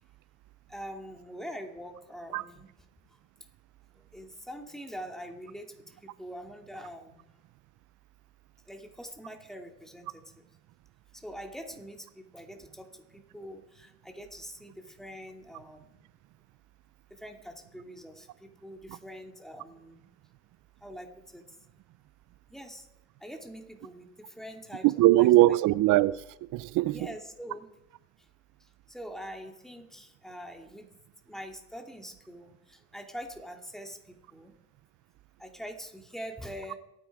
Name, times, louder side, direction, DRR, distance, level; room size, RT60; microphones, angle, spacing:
voice 1, 0.7-2.7 4.1-7.3 8.7-10.5 11.1-16.0 17.1-20.0 20.8-21.5 22.5-22.9 23.2-25.6 26.9-27.7 28.6-30.9 31.3-34.5 35.4-36.8, equal, ahead, 2.6 m, -44 dB
voice 2, 24.8-27.0, right 17 dB, 85° right, 0.5 m, -21 dB
24.5 x 9.5 x 4.8 m
cardioid pair, 90°, 30 cm